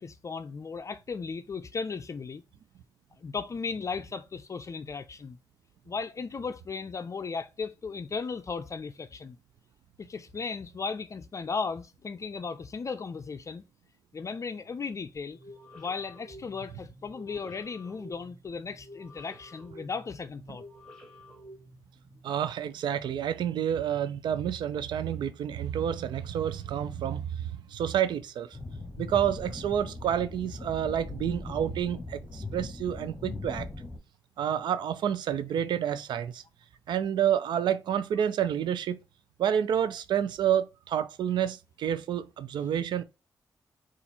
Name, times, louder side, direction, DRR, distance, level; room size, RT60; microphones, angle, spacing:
voice 1, 0.0-2.4 3.2-5.4 5.9-9.4 10.0-13.6 14.1-15.4 15.7-20.6, left 5 dB, 45° left, 0.4 m, -36 dB
sound 1, 15.3-22.2, equal, 5° left, 2.0 m, -50 dB
voice 2, 22.2-28.6 29.0-33.7 34.4-36.4 36.9-39.0 39.4-43.0, right 9 dB, 85° right, 0.5 m, -29 dB
sound 2, 28.5-34.0, left 2 dB, 25° left, 1.3 m, -39 dB
4.2 x 2.5 x 4.1 m
cardioid pair, 60°, 8 cm